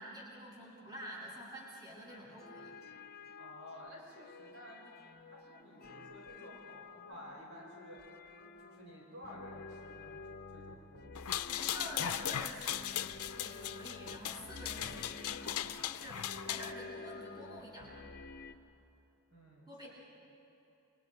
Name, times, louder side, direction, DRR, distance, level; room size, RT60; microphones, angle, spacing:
voice 1, 0.0-2.7 11.4-18.1 19.7-19.9, equal, 20° right, -5 dB, 7.0 m, -48 dB
sound 1, 2.1-18.5, left 3 dB, 45° left, 0.8 m, -51 dB
voice 2, 3.4-4.8 5.3-8.0 8.6-11.1 19.3-19.9, equal, 60° right, -3 dB, 5.9 m, -53 dB
sound 2, 11.1-16.7, left 11 dB, 85° left, 0.6 m, -38 dB
30.0 x 24.5 x 4.7 m, 2.9 s
head